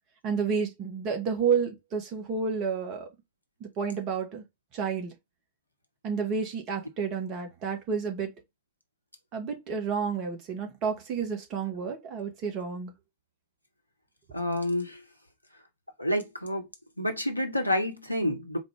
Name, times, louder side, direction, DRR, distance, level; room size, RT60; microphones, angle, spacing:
voice 1, 0.2-3.1 3.6-4.4 4.7-5.1 6.0-8.3 9.3-12.9, right 6 dB, 35° right, 1.2 m, -30 dB
voice 2, 14.3-15.0 16.0-16.7 17.0-18.6, left 1 dB, 85° left, 0.8 m, -28 dB
4.2 x 2.4 x 3.4 m
figure-of-eight pair, 90°, 0 cm